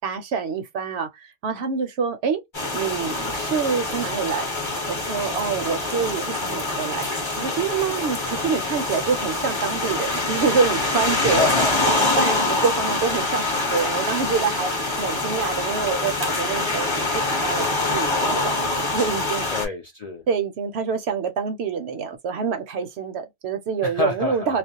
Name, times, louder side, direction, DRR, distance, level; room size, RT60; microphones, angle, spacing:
voice 1, 0.0-2.4 2.7-7.1 7.4-11.5 11.9-19.4 20.3-24.6, right 6 dB, 65° right, 0.8 m, -26 dB
sound 1, 2.5-19.6, left 2 dB, 25° left, 0.9 m, -25 dB
voice 2, 11.2-11.8 19.5-20.2 23.8-24.5, left 5 dB, 45° left, 0.5 m, -27 dB
2.4 x 2.0 x 2.6 m
omnidirectional pair, 1.3 m